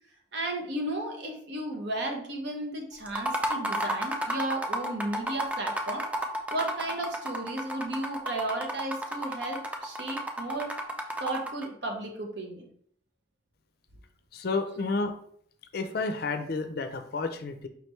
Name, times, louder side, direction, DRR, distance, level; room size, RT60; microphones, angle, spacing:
voice 1, 0.3-6.1 6.5-10.8 11.2-12.7, right 1 dB, 60° right, 2 dB, 0.8 m, -34 dB
sound 1, 3.1-11.7, right 1 dB, 5° right, 0.4 m, -32 dB
voice 2, 14.3-15.1 15.7-17.7, left 3 dB, 50° left, 8 dB, 0.4 m, -31 dB
4.9 x 3.2 x 3.1 m, 0.63 s
head